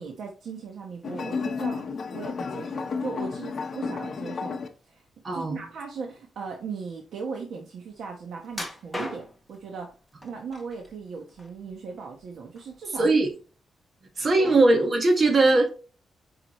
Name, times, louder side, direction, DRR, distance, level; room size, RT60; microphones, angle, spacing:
voice 1, 0.0-4.6 4.8-5.0 5.3-9.9 10.2-13.1 14.4-14.5, right 5 dB, 75° right, 1 dB, 1.2 m, -38 dB
sound 1, 1.0-4.7, left 5 dB, 45° left, 1.0 m, -32 dB
voice 2, 5.2-5.6 13.0-13.3 14.2-15.7, right 2 dB, 40° right, 3 dB, 1.6 m, -20 dB
sound 2, 8.5-9.5 10.2-10.9 11.3-12.2 12.6-12.7 13.3-13.4, left 1 dB, ahead, 1.3 m, -37 dB
9.0 x 4.9 x 3.1 m, 0.36 s
wide cardioid pair, 160°, 0 cm